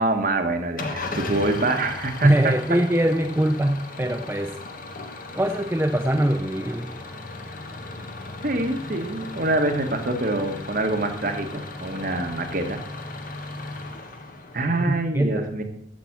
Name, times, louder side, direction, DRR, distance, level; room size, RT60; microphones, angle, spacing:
voice 1, 0.0-2.5 8.4-12.8 14.5-15.6, right 2 dB, 45° right, 6 dB, 1.4 m, -25 dB
Engine starting / Idling, 0.8-14.9, left 2 dB, 45° left, 1.2 m, -36 dB
voice 2, 2.2-4.6 5.3-7.0 14.9-15.5, right 1 dB, 10° right, 5 dB, 0.5 m, -22 dB
14.0 x 5.9 x 6.0 m, 0.71 s
head